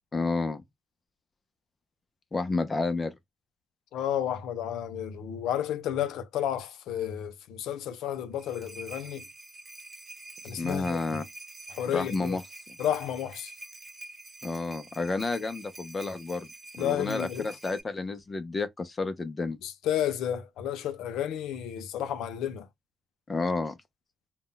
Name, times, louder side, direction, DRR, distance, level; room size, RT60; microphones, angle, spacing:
voice 1, 0.1-0.6 2.3-3.1 10.6-11.2 11.9-12.4 14.4-16.5 16.8-19.6 23.3-23.8, left 3 dB, 25° left, 0.4 m, -30 dB
voice 2, 3.9-9.3 10.4-11.0 11.7-12.4 12.8-13.5 16.8-17.5 19.6-22.7, left 10 dB, 90° left, 0.5 m, -32 dB
sound 1, 8.1-17.8, right 2 dB, 25° right, 0.6 m, -47 dB
2.1 x 2.0 x 3.7 m
cardioid pair, 110°, 0 cm